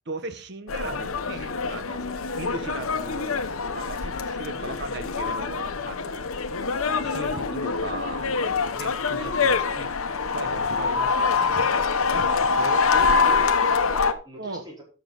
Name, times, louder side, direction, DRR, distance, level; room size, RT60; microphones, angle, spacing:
voice 1, 0.1-3.4 3.7-6.3 7.0-9.9 10.3-11.6 12.0-13.3 14.4-14.7, right 2 dB, 50° right, 10 dB, 1.2 m, -38 dB
sound 1, 0.7-14.1, left 5 dB, 85° left, 1.0 m, -25 dB
voice 2, 9.1-9.5 12.8-14.8, left 2 dB, 20° right, -2 dB, 4.7 m, -39 dB
12.5 x 7.2 x 4.0 m, 0.36 s
head